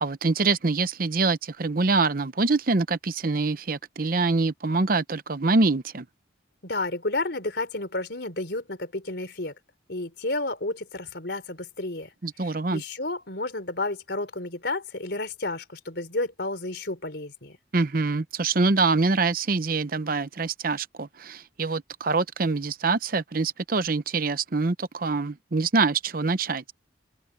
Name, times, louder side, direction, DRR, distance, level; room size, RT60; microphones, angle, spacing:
voice 1, 0.0-6.1 12.2-12.8 17.7-26.7, right 3 dB, 50° right, 0.8 m, -25 dB
voice 2, 6.6-9.5 9.9-12.1 12.4-17.6, left 2 dB, 65° left, 4.2 m, -31 dB
open air
head